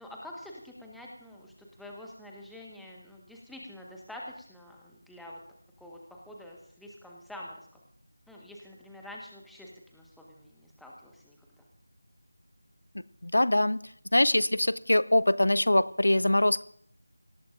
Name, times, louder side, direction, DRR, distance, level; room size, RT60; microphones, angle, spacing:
voice 1, 0.0-5.4 5.8-7.8 8.3-11.6, left 1 dB, ahead, -3 dB, 1.5 m, -47 dB
voice 2, 13.2-13.8 14.1-16.6, left 1 dB, 65° left, 18 dB, 0.5 m, -23 dB
24.5 x 18.5 x 2.6 m, 0.65 s
figure-of-eight pair, 165°, 0 cm